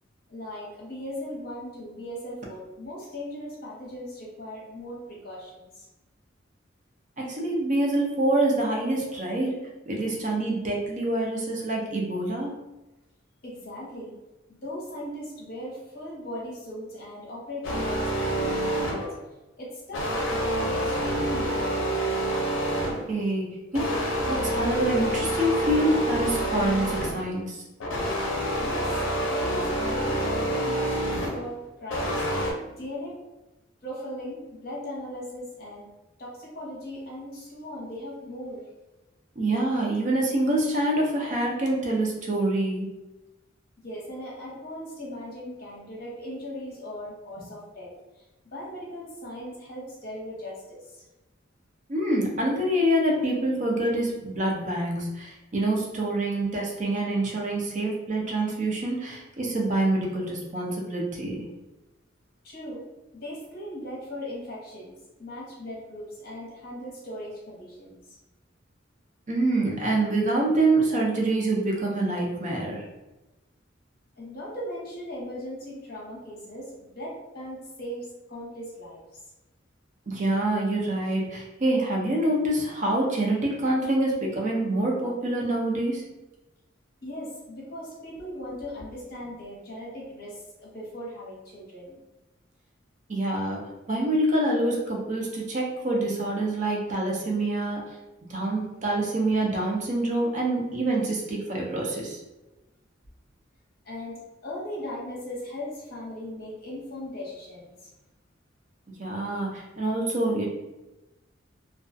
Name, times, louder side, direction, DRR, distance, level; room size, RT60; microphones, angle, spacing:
voice 1, 0.3-5.9 13.4-14.1 14.5-19.1 19.6-21.9 28.6-32.2 32.7-33.2 33.8-35.9 36.2-38.6 43.8-47.9 48.5-51.0 62.4-62.8 63.1-68.0 74.2-79.0 87.0-92.0 103.8-107.9, equal, 50° left, -4 dB, 0.8 m, -38 dB
voice 2, 7.2-9.6 9.9-12.5 23.1-27.6 39.4-43.0 51.9-61.5 69.3-72.8 80.1-86.0 93.1-97.8 98.3-102.2 109.0-110.4, right 1 dB, 40° right, -2 dB, 0.5 m, -26 dB
sound 1, 17.6-19.2 19.9-23.2 23.7-27.3 27.8-31.4 31.9-32.5, right 1 dB, 80° left, 0.5 m, -27 dB
2.3 x 2.3 x 2.5 m, 1.0 s
head